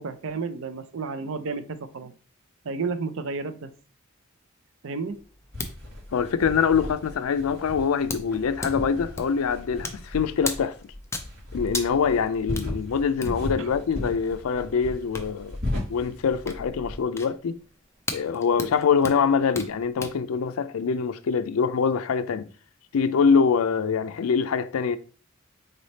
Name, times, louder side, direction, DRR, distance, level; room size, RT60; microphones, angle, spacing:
voice 1, 0.0-2.1 2.6-3.7 4.8-5.2 13.6-13.7, right 4 dB, 65° right, 0.5 m, -32 dB
sound 1, 5.1-20.2, left 3 dB, 15° left, 0.5 m, -40 dB
sound 2, 5.5-17.0, left 1 dB, 50° right, 2.6 m, -36 dB
voice 2, 6.1-10.9 11.5-15.6 15.9-17.6 18.1-22.5 22.9-25.0, left 6 dB, 85° left, 0.4 m, -24 dB
4.0 x 3.3 x 4.0 m
head